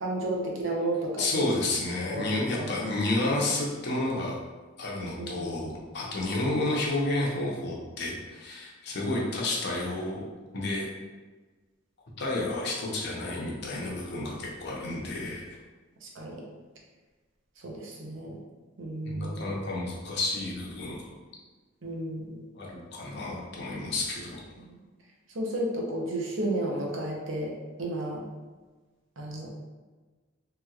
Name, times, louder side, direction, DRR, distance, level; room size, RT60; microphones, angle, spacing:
voice 1, 0.0-1.5 2.1-2.8 5.2-5.8 16.0-16.4 17.6-18.4 18.8-19.5 21.8-22.4 25.3-28.2 29.2-29.5, right 1 dB, 75° right, -2 dB, 0.7 m, -33 dB
voice 2, 1.2-4.4 4.8-10.3 10.5-10.9 12.2-15.4 19.0-21.1 22.6-24.4, left 2 dB, 55° left, -3 dB, 0.7 m, -31 dB
3.2 x 3.0 x 2.4 m, 1.3 s
head